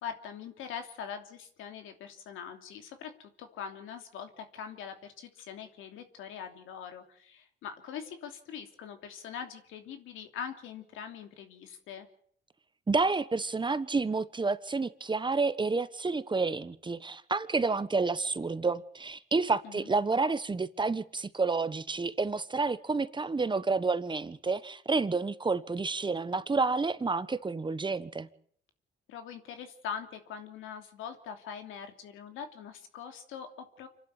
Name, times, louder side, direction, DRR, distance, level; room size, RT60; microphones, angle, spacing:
voice 1, 0.0-12.1 19.6-19.9 29.1-33.9, left 7 dB, 90° left, 3.0 m, -42 dB
voice 2, 12.9-28.3, right 4 dB, 25° right, 1.2 m, -29 dB
26.5 x 12.0 x 9.0 m
cardioid pair, 90°, 20 cm